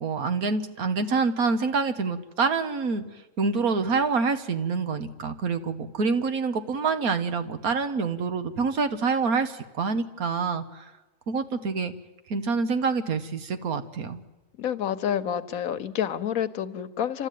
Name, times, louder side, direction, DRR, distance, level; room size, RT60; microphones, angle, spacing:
voice 1, 0.0-3.0 3.4-10.9 11.3-11.9 12.3-14.2, right 4 dB, 85° right, 9 dB, 1.8 m, -26 dB
voice 2, 14.6-17.3, left 9 dB, 75° left, 12 dB, 1.3 m, -28 dB
29.5 x 13.0 x 9.3 m, 1.1 s
omnidirectional pair, 1.5 m